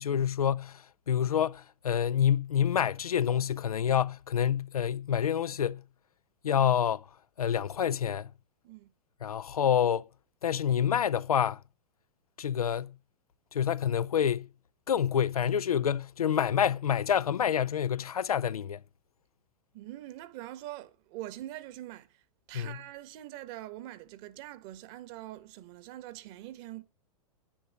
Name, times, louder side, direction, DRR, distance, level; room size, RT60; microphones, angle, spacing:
voice 1, 0.0-5.8 6.4-7.1 7.4-8.3 9.2-10.1 10.4-11.6 12.4-13.0 13.5-14.5 14.9-18.8 22.5-22.8, left 9 dB, 80° left, 0.5 m, -27 dB
voice 2, 19.7-22.2 22.5-26.8, right 14 dB, 45° right, 1.6 m, -44 dB
9.9 x 9.5 x 6.1 m
hypercardioid pair, 105°, 18 cm